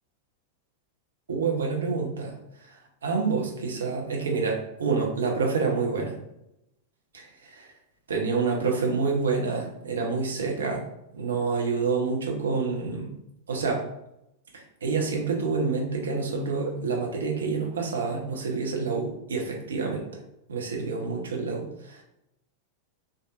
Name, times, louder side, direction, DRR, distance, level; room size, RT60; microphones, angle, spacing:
voice 1, 1.3-2.3 3.0-6.2 7.1-7.7 8.1-10.9 11.1-13.1 13.5-13.8 14.5-20.1 20.5-22.0, right 4 dB, 70° right, 0 dB, 0.7 m, -28 dB
3.5 x 2.6 x 2.4 m, 0.84 s
figure-of-eight pair, 90°, 0 cm